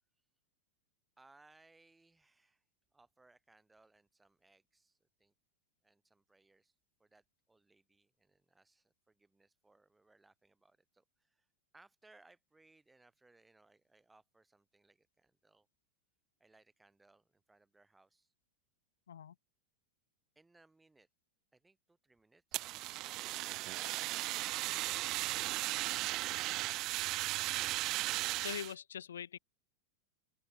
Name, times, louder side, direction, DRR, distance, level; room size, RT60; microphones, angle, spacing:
voice 1, 1.2-2.6 2.9-5.3 5.8-6.7 7.0-11.5 11.7-15.7 16.4-18.3 20.3-21.1 21.5-24.9, right 2 dB, 10° right, 7.9 m, -67 dB
Fire, 22.5-28.7, right 19 dB, 40° right, 0.5 m, -36 dB
voice 2, 28.4-29.4, left 9 dB, 65° left, 0.6 m, -43 dB
open air
figure-of-eight pair, 90°, 0 cm